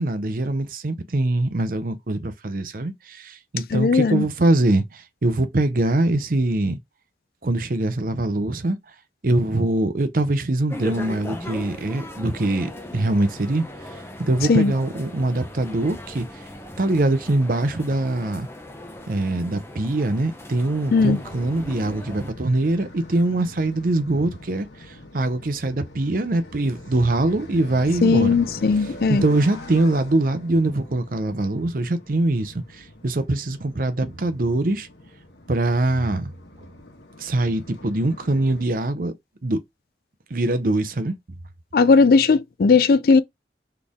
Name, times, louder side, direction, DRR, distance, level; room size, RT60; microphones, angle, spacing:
voice 1, 0.0-6.8 7.4-8.8 9.2-13.6 13.9-16.3 16.8-18.5 19.1-28.4 29.1-34.9 35.5-36.3 37.2-39.1 39.4-39.6 40.3-41.1, right 2 dB, 50° right, 0.7 m, -23 dB
voice 2, 3.7-4.3 14.5-14.7 20.9-21.2 28.0-29.2 41.7-43.2, left 4 dB, 55° left, 0.4 m, -17 dB
sound 1, 10.7-22.3, left 1 dB, 15° left, 0.7 m, -38 dB
sound 2, 20.9-38.6, left 1 dB, 75° left, 1.4 m, -43 dB
4.2 x 3.3 x 3.5 m
head